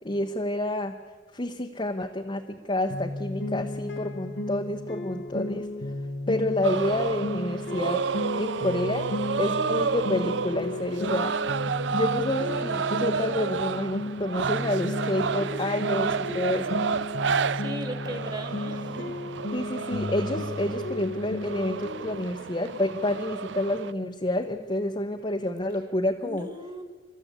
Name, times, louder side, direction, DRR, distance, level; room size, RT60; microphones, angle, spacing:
voice 1, 0.0-0.9 1.3-5.7 6.3-8.0 8.4-9.1 9.4-11.3 11.9-16.8 19.5-26.5, left 1 dB, 30° left, 3 dB, 0.9 m, -29 dB
sound 1, 2.9-22.3, left 2 dB, 80° left, 1.3 m, -34 dB
sound 2, 6.6-23.9, right 6 dB, 80° right, 0.5 m, -31 dB
voice 2, 17.5-19.1 26.2-26.8, right 1 dB, 25° right, 7 dB, 2.1 m, -38 dB
29.5 x 13.5 x 8.3 m, 1.5 s
head